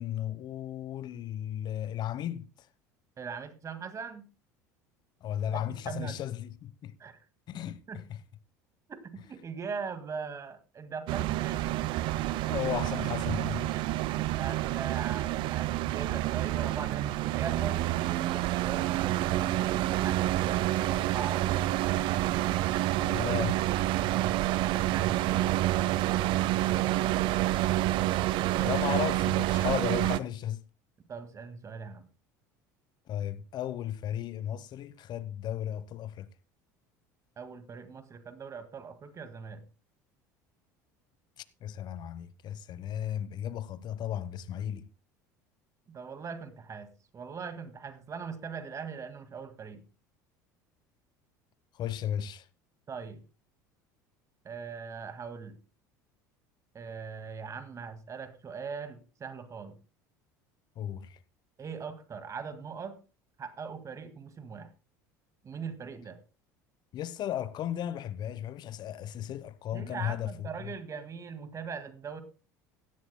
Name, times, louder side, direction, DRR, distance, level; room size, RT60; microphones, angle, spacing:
voice 1, 0.0-2.4 5.2-6.9 7.5-7.8 8.1-8.2 12.5-13.7 23.0-23.6 28.6-30.6 33.1-36.3 41.6-44.9 51.7-52.4 60.8-61.2 66.9-70.7, left 11 dB, 50° left, 1.0 m, -35 dB
voice 2, 3.2-4.3 5.5-6.2 7.0-7.2 7.9-8.0 8.9-11.7 14.3-17.8 18.2-22.1 23.8-25.5 26.2-27.4 28.5-28.8 31.1-32.1 37.4-39.6 45.9-49.8 52.9-53.2 54.4-55.6 56.7-59.8 61.6-63.0 63.4-64.7 65.4-66.2 69.7-72.2, right 6 dB, 35° right, 2.0 m, -41 dB
sound 1, 11.1-30.2, right 15 dB, 60° right, 0.6 m, -28 dB
17.0 x 12.5 x 2.2 m
hypercardioid pair, 75°, 10 cm